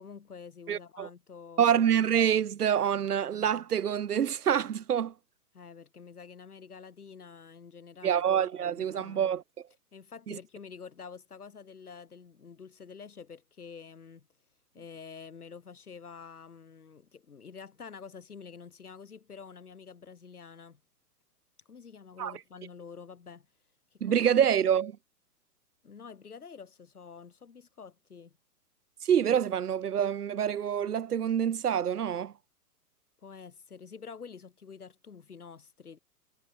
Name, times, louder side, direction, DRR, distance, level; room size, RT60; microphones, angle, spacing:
voice 1, 0.0-1.8 5.5-8.2 8.6-9.3 9.9-14.3 14.7-20.8 21.7-23.5 23.9-24.2 25.8-28.4 33.2-36.0, left 6 dB, 70° left, 2.6 m, -48 dB
voice 2, 0.7-1.1 1.6-5.1 8.0-9.4 10.3-10.4 22.2-22.3 24.0-25.0 29.0-32.3, right 9 dB, 75° right, 0.8 m, -26 dB
figure-of-eight pair, 115°, 47 cm